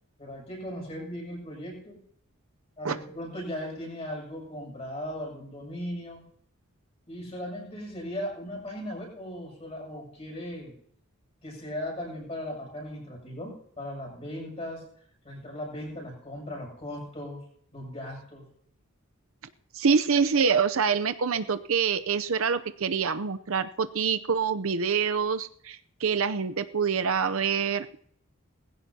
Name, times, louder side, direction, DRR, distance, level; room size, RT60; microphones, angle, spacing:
voice 1, 0.2-2.0 2.8-6.2 7.1-10.7 11.4-14.8 15.2-17.4 17.7-18.5, equal, 30° left, -2 dB, 7.0 m, -37 dB
voice 2, 19.7-28.0, right 6 dB, 65° right, 10 dB, 0.6 m, -26 dB
20.0 x 16.0 x 2.8 m, 0.65 s
head